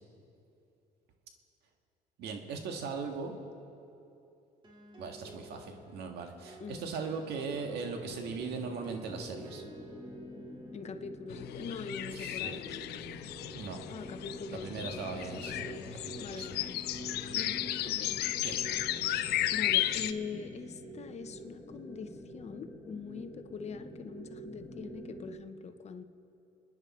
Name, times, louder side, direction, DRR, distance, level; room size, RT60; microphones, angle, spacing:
voice 1, 2.2-3.4 5.0-9.6 12.1-12.6 13.5-13.8 14.5-15.7 16.2-16.5 18.4-18.6, right 5 dB, 75° right, 4 dB, 1.8 m, -39 dB
sound 1, 4.6-14.2, equal, 30° right, 2.4 m, -56 dB
voice 2, 6.6-6.9 10.7-12.8 13.9-16.8 17.3-18.2 19.5-26.0, left 5 dB, 40° left, 9 dB, 0.9 m, -43 dB
sound 2, 7.5-25.4, equal, 15° left, 1.8 m, -47 dB
sound 3, 11.3-20.1, left 14 dB, 75° left, 0.6 m, -34 dB
29.5 x 10.0 x 4.3 m, 2.8 s
cardioid pair, 110°, 17 cm